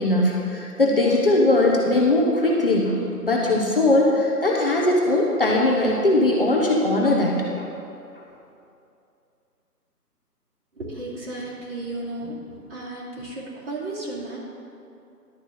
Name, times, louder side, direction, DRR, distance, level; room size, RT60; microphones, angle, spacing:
voice 1, 0.0-7.7, left 2 dB, 35° left, -2 dB, 0.9 m, -20 dB
voice 2, 10.7-14.4, right 2 dB, 40° right, -6 dB, 2.6 m, -34 dB
11.5 x 4.5 x 7.8 m, 2.6 s
figure-of-eight pair, 160°, 48 cm